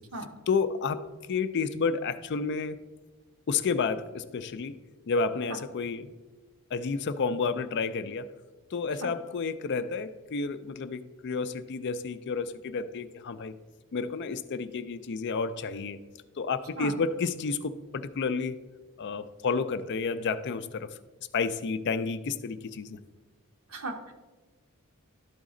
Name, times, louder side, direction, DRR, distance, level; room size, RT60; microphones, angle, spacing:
voice 1, 0.5-2.8 3.5-4.7 5.1-6.1 6.7-8.3 8.7-13.5 13.9-16.0 16.4-18.6 19.0-20.9 21.3-23.0, left 4 dB, 55° left, 12 dB, 0.4 m, -30 dB
voice 2, 23.7-24.1, right 2 dB, 80° right, 5 dB, 1.0 m, -36 dB
12.0 x 4.1 x 3.7 m, 1.2 s
head